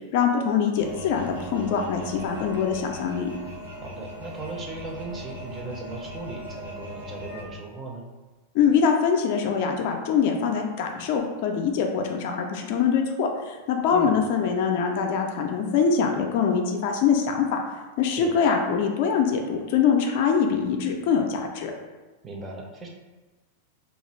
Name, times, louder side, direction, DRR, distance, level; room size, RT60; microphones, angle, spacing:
voice 1, 0.1-3.3 8.5-17.6 18.0-21.7, left 6 dB, 50° left, 2 dB, 0.3 m, -23 dB
sound 1, 0.7-7.4, equal, 75° right, 0.9 m, -39 dB
voice 2, 3.8-8.1 13.9-14.1 18.2-18.3 22.2-22.9, right 2 dB, 20° right, 0 dB, 0.5 m, -37 dB
2.3 x 2.3 x 3.1 m, 1.2 s
figure-of-eight pair, 90°, 0 cm